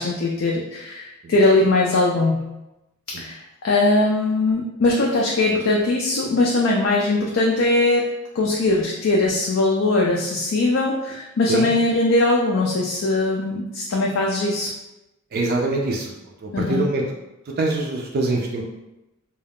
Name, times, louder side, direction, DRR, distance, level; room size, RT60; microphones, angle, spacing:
voice 1, 0.0-2.5 3.2-8.1 8.4-14.7 16.5-16.9, left 2 dB, 60° left, -2 dB, 0.4 m, -20 dB
voice 2, 15.3-16.1 16.4-17.0 17.6-18.6, right 2 dB, 45° right, 0 dB, 0.4 m, -23 dB
2.3 x 2.3 x 3.4 m, 0.96 s
head